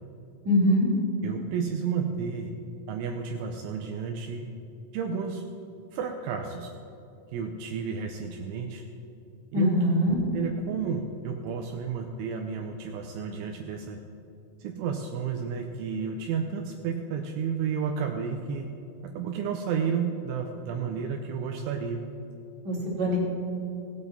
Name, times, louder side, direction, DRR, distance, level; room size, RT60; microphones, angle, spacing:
voice 1, 0.4-0.9 9.5-10.2 22.6-23.2, equal, 35° right, -5 dB, 1.8 m, -23 dB
voice 2, 1.2-2.5 2.9-4.5 4.9-5.4 5.9-6.7 7.3-8.8 9.5-9.7 10.3-14.0 14.6-18.7 19.2-22.0, right 6 dB, 80° right, 3 dB, 2.9 m, -31 dB
17.5 x 8.8 x 4.0 m, 2.8 s
omnidirectional pair, 5.9 m